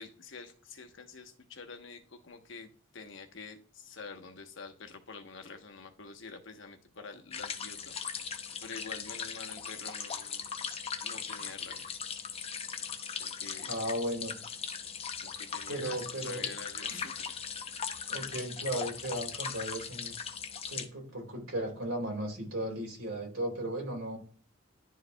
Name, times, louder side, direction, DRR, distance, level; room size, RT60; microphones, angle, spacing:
voice 1, 0.0-7.9 8.3-10.5 11.0-11.9 13.2-13.7 15.2-17.4, left 4 dB, 65° left, 5 dB, 1.1 m, -47 dB
sound 1, 7.3-20.9, left 6 dB, 30° left, 0.6 m, -39 dB
voice 2, 13.7-14.3 15.7-16.5 16.9-17.0 18.1-20.2 20.7-24.2, right 1 dB, 90° right, 0 dB, 3.2 m, -36 dB
11.0 x 4.7 x 2.3 m, 0.43 s
head